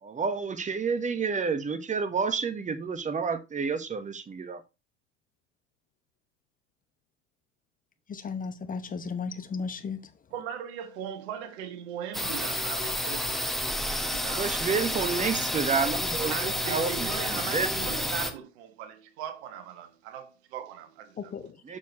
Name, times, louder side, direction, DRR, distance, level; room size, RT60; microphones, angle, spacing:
voice 1, 0.0-4.6 14.2-18.1 21.6-21.8, right 5 dB, 20° right, 1.4 m, -30 dB
voice 2, 8.1-10.1 21.2-21.6, left 5 dB, 20° left, 0.9 m, -35 dB
voice 3, 10.3-14.5 15.7-15.9 16.3-21.3, right 9 dB, 60° right, 1.8 m, -39 dB
sound 1, 12.1-18.3, left 1 dB, ahead, 1.3 m, -30 dB
7.1 x 7.0 x 3.0 m
hypercardioid pair, 85°, 37 cm